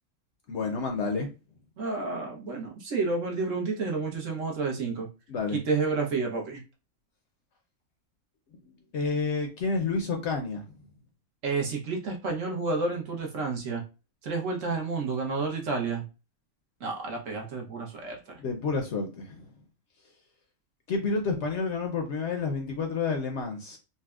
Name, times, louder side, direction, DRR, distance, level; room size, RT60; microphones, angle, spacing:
voice 1, 0.5-1.3 5.3-5.6 8.9-10.6 18.4-19.5 20.9-23.8, left 4 dB, 65° left, 0.8 m, -29 dB
voice 2, 1.8-5.1 5.5-6.6 11.4-13.8 14.2-16.0 16.8-18.4, right 4 dB, 60° right, 1.2 m, -30 dB
4.0 x 2.2 x 2.3 m
omnidirectional pair, 1.5 m